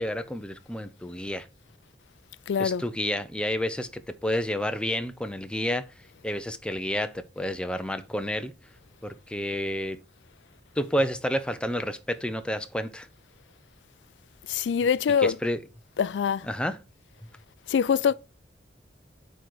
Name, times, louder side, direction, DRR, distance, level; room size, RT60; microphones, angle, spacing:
voice 1, 0.0-1.5 2.6-5.9 6.2-8.5 9.0-10.0 10.8-13.1 15.2-15.6 16.5-16.8, equal, 5° left, 0.6 m, -30 dB
voice 2, 2.5-2.9 14.5-15.4 16.0-16.5 17.7-18.1, left 7 dB, 75° left, 0.3 m, -24 dB
9.0 x 3.9 x 4.7 m
head